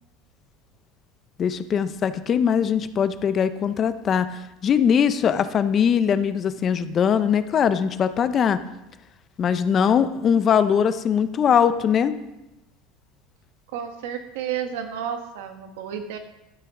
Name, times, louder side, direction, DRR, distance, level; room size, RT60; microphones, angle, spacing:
voice 1, 1.4-8.6 9.4-12.2, left 7 dB, 30° left, 12 dB, 0.5 m, -21 dB
voice 2, 13.7-16.2, right 8 dB, 80° right, 6 dB, 1.4 m, -31 dB
12.0 x 9.1 x 3.7 m, 0.93 s
cardioid pair, 155°, 0 cm